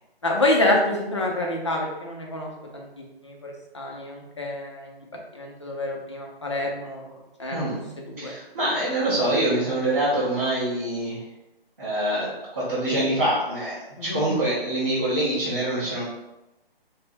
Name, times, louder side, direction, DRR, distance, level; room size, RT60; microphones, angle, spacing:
voice 1, 0.2-5.0 5.3-7.0 7.4-7.7 8.0-8.3 14.0-14.2, left 1 dB, 30° left, 0 dB, 0.5 m, -27 dB
voice 2, 7.5-11.2 11.8-16.0, right 1 dB, 15° right, -14 dB, 0.6 m, -25 dB
3.4 x 2.2 x 4.3 m, 0.95 s
hypercardioid pair, 170°, 30 cm